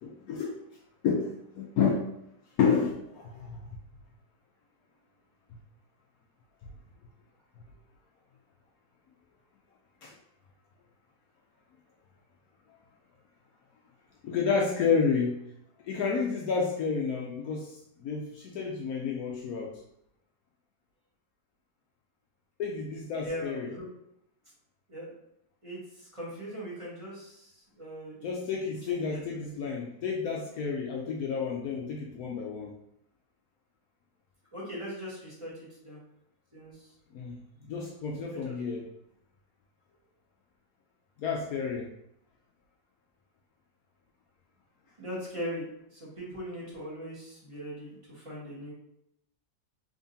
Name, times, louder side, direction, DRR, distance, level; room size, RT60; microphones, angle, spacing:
voice 1, 0.0-0.6 1.0-2.1 2.6-3.6 10.0-10.2 14.2-15.4 15.8-19.7 22.6-23.7 28.2-32.7 37.1-38.9 41.2-41.9, left 5 dB, 70° left, -1 dB, 0.9 m, -30 dB
voice 2, 23.2-23.9 24.9-25.1 25.6-28.3 29.1-29.2 34.5-36.0 36.5-36.9 38.3-38.5 45.0-48.7, equal, 20° right, -6 dB, 1.3 m, -40 dB
3.7 x 3.5 x 2.6 m, 0.77 s
omnidirectional pair, 1.9 m